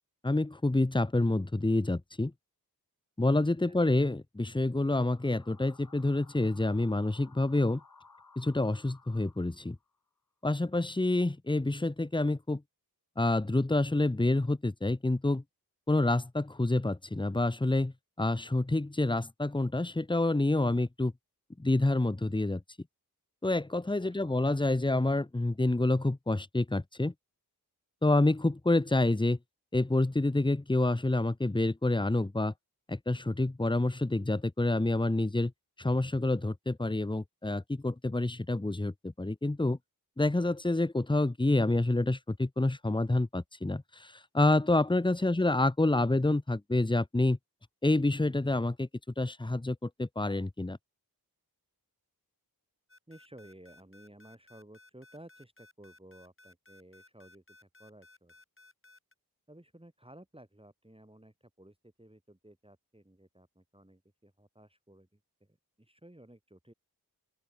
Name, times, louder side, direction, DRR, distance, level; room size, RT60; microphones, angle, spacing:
voice 1, 0.2-2.3 3.2-7.8 8.4-9.8 10.4-12.6 13.2-15.4 15.9-21.1 21.6-22.6 23.4-27.1 28.0-29.4 29.7-32.5 32.9-35.5 35.8-39.8 40.2-47.4 47.8-48.9 49.2-50.8, left 2 dB, 10° left, 0.7 m, -28 dB
sound 1, 4.8-9.9, left 4 dB, 60° left, 2.6 m, -58 dB
voice 2, 24.0-24.5 45.2-45.4 53.1-58.3 59.5-66.7, right 1 dB, 15° right, 3.6 m, -55 dB
sound 2, 52.9-59.1, left 2 dB, 30° left, 4.6 m, -58 dB
open air
wide cardioid pair, 60°, 39 cm